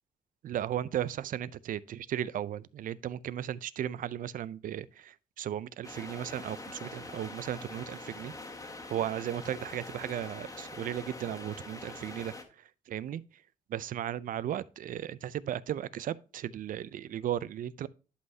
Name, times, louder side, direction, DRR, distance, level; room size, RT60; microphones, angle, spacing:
voice 1, 0.4-8.4 8.9-13.2 13.7-17.9, right 11 dB, 65° right, 0.4 m, -36 dB
sound 1, 5.8-12.4, left 2 dB, 20° left, 1.5 m, -44 dB
11.0 x 5.5 x 2.7 m
cardioid pair, 120°, 15 cm